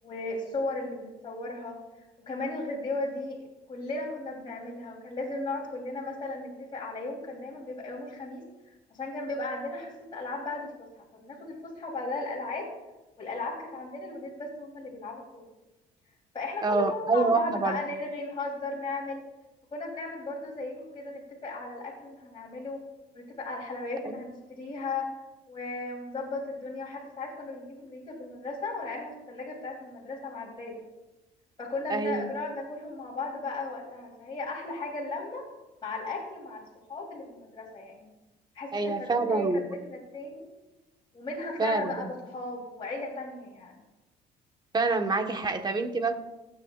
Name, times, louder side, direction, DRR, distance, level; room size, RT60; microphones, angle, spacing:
voice 1, 0.0-1.8 2.2-10.9 11.1-12.7 13.2-15.4 16.3-19.2 19.7-22.8 23.1-25.1 25.5-30.8 31.6-35.4 35.8-36.6 36.9-38.1 38.5-40.4 41.1-43.8, left 2 dB, 30° left, -6 dB, 3.3 m, -36 dB
voice 2, 16.6-17.8 24.0-24.2 31.9-32.3 38.7-39.6 41.6-42.1 44.7-46.2, right 3 dB, 25° right, 6 dB, 1.3 m, -26 dB
25.5 x 9.2 x 2.4 m, 1.0 s
cardioid pair, 110°, 17 cm